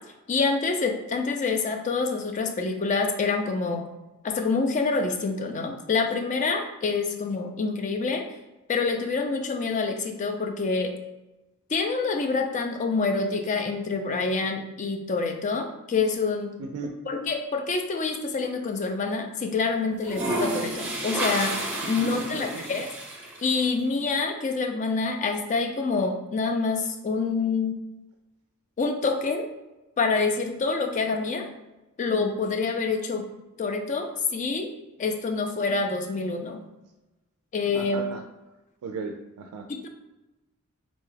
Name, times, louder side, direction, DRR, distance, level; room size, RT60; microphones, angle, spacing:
voice 1, 0.3-3.8 4.2-8.2 8.7-11.0 11.7-16.5 17.1-21.6 21.9-22.9 23.4-27.8 28.8-29.5 30.0-31.5 32.0-33.3 33.6-34.7 35.0-36.6 37.5-38.1 39.7-39.9, left 4 dB, 35° left, 5 dB, 0.4 m, -26 dB
voice 2, 16.6-17.0 22.0-22.8 37.7-38.2 38.8-39.7, right 4 dB, 80° right, 4 dB, 0.3 m, -36 dB
sound 1, 17.8-18.5 19.9-23.6, right 1 dB, 10° right, 0.8 m, -31 dB
4.1 x 2.3 x 3.1 m, 1.0 s
head